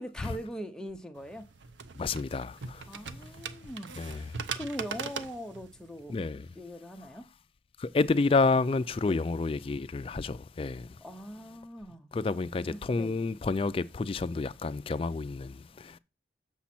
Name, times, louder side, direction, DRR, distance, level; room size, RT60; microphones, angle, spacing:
voice 1, 0.0-1.5 2.9-3.9 4.5-6.2 6.5-7.3 9.0-9.3 11.0-12.1 12.3-13.2, equal, 5° left, 0.7 m, -41 dB
sound 1, 1.2-6.6, right 5 dB, 70° right, 0.6 m, -41 dB
voice 2, 2.0-2.8 4.0-4.3 6.1-6.5 7.8-10.9 12.1-16.0, left 3 dB, 30° left, 0.3 m, -29 dB
7.2 x 6.1 x 4.3 m
head